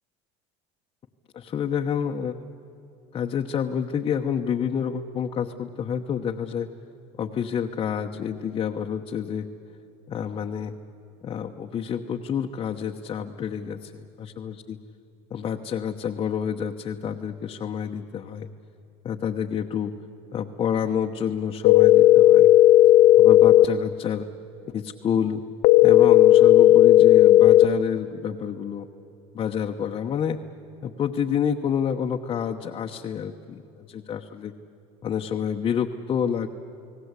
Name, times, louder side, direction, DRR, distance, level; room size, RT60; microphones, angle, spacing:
voice 1, 1.3-2.4 3.1-6.7 7.2-9.5 10.1-10.7 11.2-14.8 15.3-18.5 19.0-19.9 20.3-22.5 23.2-24.3 24.7-25.4 25.8-28.9 29.3-30.4 30.8-33.6 33.9-34.5 35.0-36.5, left 8 dB, 35° left, 2 dB, 1.0 m, -28 dB
sound 1, 21.6-23.7 25.6-27.7, left 14 dB, 65° left, 0.6 m, -13 dB
30.0 x 19.0 x 8.2 m, 2.9 s
supercardioid pair, 120°, 15 cm